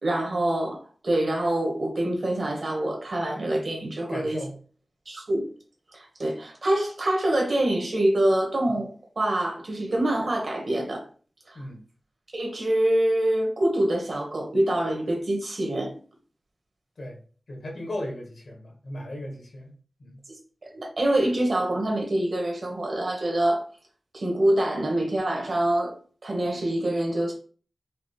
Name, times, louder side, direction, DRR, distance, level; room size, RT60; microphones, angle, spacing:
voice 1, 0.0-4.4 5.1-5.5 5.9-8.9 9.2-11.0 11.5-11.6 12.3-15.9 20.3-20.4 20.7-23.6 24.1-25.9 26.2-27.3, right 1 dB, 70° right, 1.2 m, -25 dB
voice 2, 4.1-4.5 11.5-11.8 17.0-17.2 17.5-19.7 20.0-20.2, left 1 dB, 85° left, 1.2 m, -36 dB
4.9 x 2.1 x 3.1 m
wide cardioid pair, 55°, 0 cm